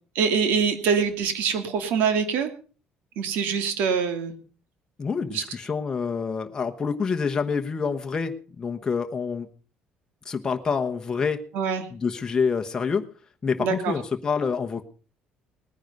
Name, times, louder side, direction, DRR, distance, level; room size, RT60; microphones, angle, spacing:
voice 1, 0.1-2.5 3.2-4.3 5.3-5.4 11.5-11.9 13.6-14.0, right 6 dB, 80° right, 8 dB, 2.6 m, -24 dB
voice 2, 5.0-9.5 10.2-11.4 11.9-13.1 13.4-14.8, left 5 dB, 20° left, 5 dB, 1.1 m, -27 dB
19.5 x 9.9 x 5.4 m, 0.38 s
cardioid pair, 150°, 3 cm